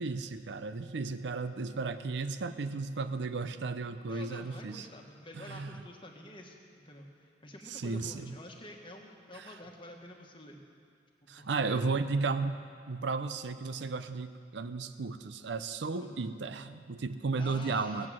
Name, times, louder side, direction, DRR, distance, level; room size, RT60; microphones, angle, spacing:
voice 1, 0.0-4.9 5.3-5.8 7.7-8.3 9.3-9.5 11.3-12.6 12.9-18.1, right 4 dB, 70° right, 11 dB, 0.5 m, -34 dB
voice 2, 4.1-10.6 11.2-11.9 15.9-16.2 17.4-18.1, left 1 dB, 25° left, 1 dB, 1.3 m, -48 dB
17.0 x 7.7 x 7.5 m, 2.2 s
head